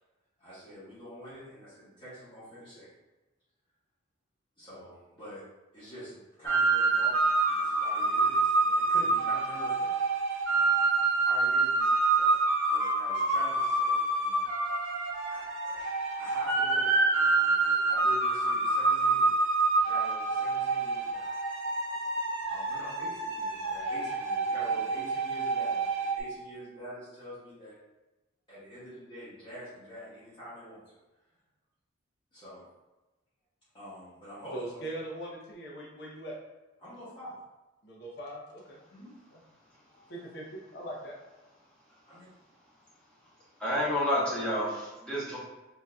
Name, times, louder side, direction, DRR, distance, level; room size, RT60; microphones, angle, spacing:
voice 1, 0.4-2.9 4.6-5.4 5.7-10.0 11.2-12.4 12.7-14.5 15.3-19.3 19.8-21.3 22.5-27.8 28.5-30.9 32.3-32.6 33.7-34.8 36.8-37.3 38.9-39.1 42.1-42.2 43.6-43.8, equal, 25° left, -11 dB, 1.2 m, -46 dB
sound 1, 6.4-26.2, right 3 dB, 80° right, 0.6 m, -27 dB
voice 2, 34.5-36.4 37.8-38.8 39.3-39.4 39.9-41.2, right 1 dB, 55° left, -3 dB, 0.7 m, -41 dB
voice 3, 43.6-45.4, left 1 dB, 5° left, -9 dB, 0.9 m, -29 dB
3.8 x 2.6 x 2.3 m, 1.1 s
head